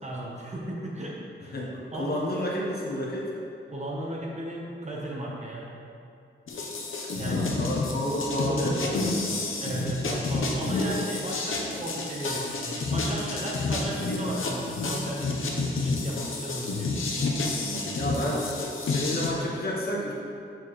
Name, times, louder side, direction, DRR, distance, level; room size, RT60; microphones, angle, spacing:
voice 1, 0.0-1.5 1.9-2.2 3.7-5.7 7.1-7.4 9.6-16.9, right 1 dB, 35° right, -4 dB, 1.1 m, -35 dB
voice 2, 1.5-3.2 7.2-9.3 17.6-18.5 18.8-20.1, equal, 50° left, -4 dB, 1.2 m, -31 dB
sound 1, 6.5-19.3, left 3 dB, 80° left, 0.9 m, -29 dB
7.0 x 6.2 x 3.2 m, 2.5 s
wide cardioid pair, 145°, 21 cm